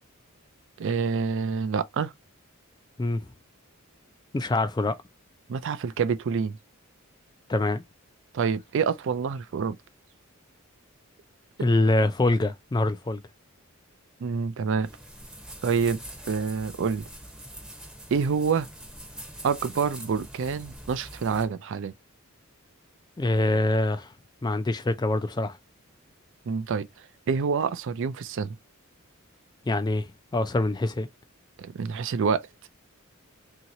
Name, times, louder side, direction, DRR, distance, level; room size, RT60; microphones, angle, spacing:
voice 1, 0.8-2.1 5.5-6.6 8.3-9.8 14.2-14.9 15.6-16.0 16.3-17.1 18.1-18.7 19.4-21.9 26.5-26.9 27.3-28.6 31.6-32.5, right 5 dB, 60° right, 0.4 m, -27 dB
voice 2, 4.3-5.0 7.5-7.8 11.6-13.2 23.2-24.1 24.4-25.6 29.7-31.1, left 2 dB, 20° left, 0.3 m, -25 dB
sound 1, 14.8-21.4, right 1 dB, 5° right, 0.8 m, -44 dB
2.9 x 2.8 x 2.6 m
head